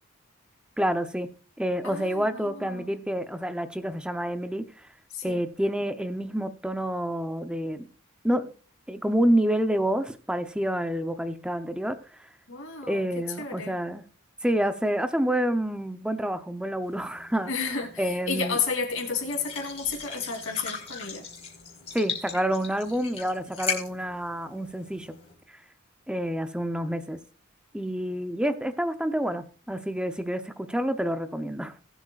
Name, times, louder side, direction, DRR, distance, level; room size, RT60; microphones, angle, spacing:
voice 1, 0.8-1.3 1.6-4.9 5.2-7.9 8.2-8.5 8.9-12.0 12.9-14.0 14.4-17.5 18.0-18.6 21.9-25.1 26.1-27.2 27.7-31.7, equal, 5° right, 0.7 m, -28 dB
voice 2, 1.8-2.9 5.1-5.4 12.5-13.8 17.5-21.3, left 5 dB, 65° left, 3.3 m, -32 dB
sound 1, 16.8-25.3, left 5 dB, 30° left, 4.0 m, -39 dB
20.0 x 8.0 x 2.5 m
head